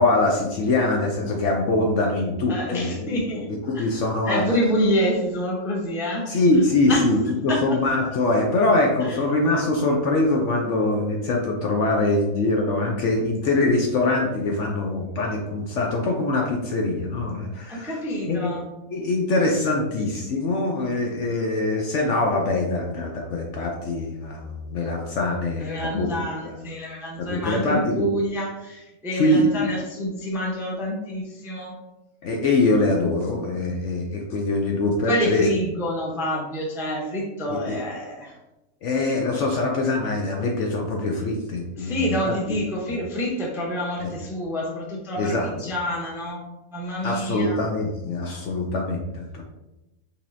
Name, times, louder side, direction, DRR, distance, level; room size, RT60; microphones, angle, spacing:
voice 1, 0.0-3.2 3.5-4.4 6.3-18.0 18.3-18.5 18.9-26.6 27.2-28.1 29.2-29.7 32.2-35.4 37.5-37.8 38.8-42.6 42.9-43.0 44.0-44.1 45.2-45.5 47.0-49.4, left 2 dB, 65° left, 1 dB, 0.8 m, -23 dB
voice 2, 2.5-3.5 3.7-3.9 4.2-6.3 6.5-7.0 7.5-7.6 9.0-9.2 17.7-18.6 25.6-31.7 35.1-38.3 41.8-46.4 46.7-47.6, equal, 5° right, -3 dB, 0.4 m, -27 dB
5.3 x 3.3 x 2.6 m, 0.99 s
omnidirectional pair, 1.6 m